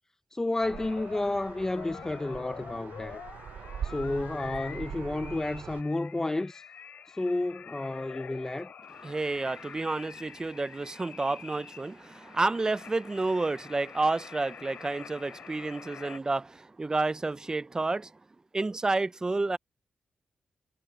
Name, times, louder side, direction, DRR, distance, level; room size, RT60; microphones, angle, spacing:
voice 1, 0.3-3.2 3.8-6.7 7.1-8.7, left 2 dB, 20° left, 0.8 m, -31 dB
sound 1, 0.6-16.2, left 8 dB, 75° left, 5.0 m, -47 dB
sound 2, 0.6-5.8, right 8 dB, 80° right, 0.7 m, -42 dB
voice 2, 9.0-18.1 18.5-19.6, right 3 dB, 25° right, 0.6 m, -30 dB
cardioid pair, 85°, 3 cm